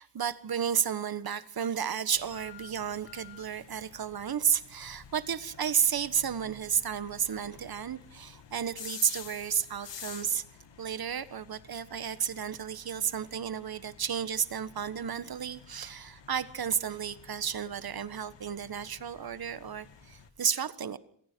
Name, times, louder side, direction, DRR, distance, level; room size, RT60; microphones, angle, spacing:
voice 1, 0.0-10.4 10.8-21.0, right 8 dB, 55° right, 14 dB, 1.4 m, -32 dB
sound 1, 2.1-20.3, left 7 dB, 80° left, 2.7 m, -51 dB
27.0 x 21.5 x 4.6 m, 0.64 s
wide cardioid pair, 135°, 43 cm